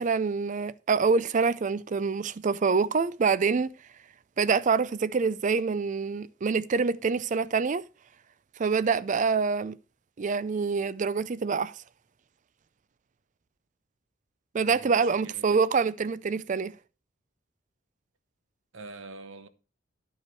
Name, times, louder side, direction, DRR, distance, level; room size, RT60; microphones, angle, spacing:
voice 1, 0.0-3.7 4.4-7.8 8.6-9.8 10.2-11.7 14.5-16.7, right 5 dB, 40° right, 0.4 m, -26 dB
voice 2, 14.6-15.6 18.7-19.5, right 3 dB, 70° right, 1.0 m, -45 dB
11.5 x 5.4 x 4.6 m
head